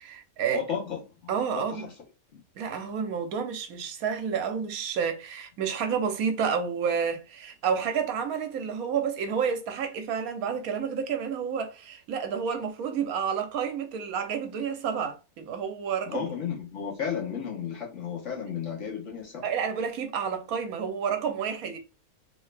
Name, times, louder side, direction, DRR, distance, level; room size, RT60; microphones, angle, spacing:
voice 1, 0.0-0.6 1.3-1.9 2.6-16.3 19.4-21.8, right 7 dB, 70° right, 1.0 m, -30 dB
voice 2, 0.5-1.9 2.3-2.4 16.1-19.5, left 7 dB, 55° left, 1.2 m, -34 dB
3.0 x 2.7 x 3.2 m
omnidirectional pair, 1.6 m